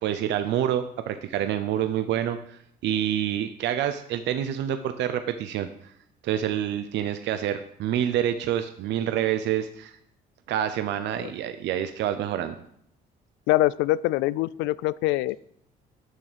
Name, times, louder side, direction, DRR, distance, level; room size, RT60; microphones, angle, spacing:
voice 1, 0.0-5.9 6.2-9.9 10.5-12.6, right 10 dB, 75° right, 9 dB, 0.7 m, -27 dB
voice 2, 13.5-15.4, left 16 dB, 90° left, 20 dB, 0.4 m, -24 dB
9.5 x 6.2 x 6.9 m, 0.70 s
cardioid pair, 100°, 19 cm